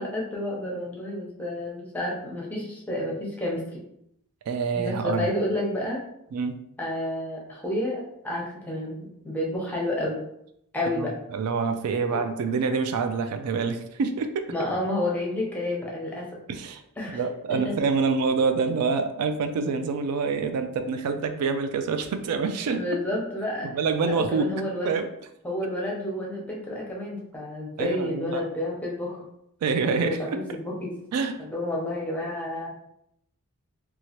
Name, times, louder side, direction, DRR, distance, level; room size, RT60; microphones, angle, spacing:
voice 1, 0.0-3.6 4.7-6.0 6.8-10.2 10.7-11.1 12.1-12.2 14.5-16.3 17.0-17.2 17.5-17.7 22.7-23.7 24.0-24.9 25.4-29.2 29.8-31.0 31.4-32.7, left 1 dB, 5° left, -3 dB, 0.7 m, -30 dB
voice 2, 4.5-5.3 6.3-6.5 10.9-14.5 16.5-16.8 17.1-22.8 23.6-24.5 24.8-25.1 25.6-25.7 27.8-28.4 29.6-30.4 31.1-31.4, right 5 dB, 85° right, 8 dB, 0.3 m, -26 dB
2.9 x 2.3 x 2.8 m, 0.77 s
head